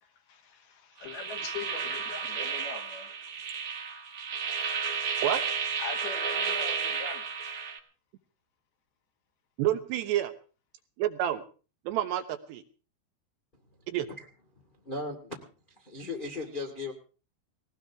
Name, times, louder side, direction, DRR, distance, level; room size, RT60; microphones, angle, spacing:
voice 1, 0.0-3.1 5.8-7.3, left 5 dB, 65° left, 4 dB, 3.4 m, -42 dB
sound 1, 1.0-7.8, right 6 dB, 55° right, 1.8 m, -32 dB
voice 2, 9.6-10.3 11.0-11.4 11.9-12.6 13.9-14.1, right 12 dB, 75° right, 7 dB, 3.1 m, -28 dB
voice 3, 14.8-15.4 15.8-16.9, left 3 dB, 25° left, 1 dB, 1.1 m, -36 dB
19.5 x 18.5 x 3.6 m, 0.37 s
omnidirectional pair, 5.3 m